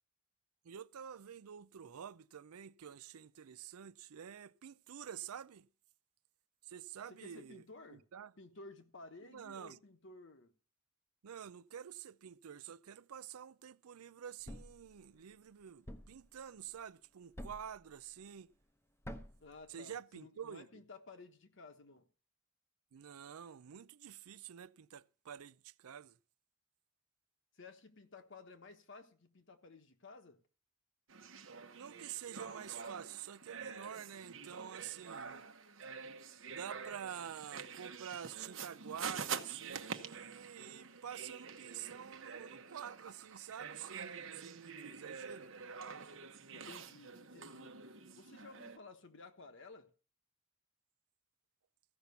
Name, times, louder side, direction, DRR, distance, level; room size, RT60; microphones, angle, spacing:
voice 1, 0.6-5.7 6.6-7.6 7.9-8.3 9.2-9.8 11.2-18.5 19.7-20.8 22.9-26.2 31.7-35.5 36.5-45.5, right 8 dB, 85° right, 0.5 m, -48 dB
voice 2, 7.1-8.1 8.4-10.5 19.4-22.1 27.5-30.4 46.5-47.7 48.1-49.9, left 3 dB, 55° left, 1.3 m, -55 dB
Thump thud, 14.5-14.8 15.9-16.2 17.4-17.8 19.0-19.5, equal, 10° left, 0.8 m, -47 dB
sound 1, 31.1-48.8, right 6 dB, 60° right, 1.0 m, -47 dB
15.0 x 5.9 x 6.8 m
head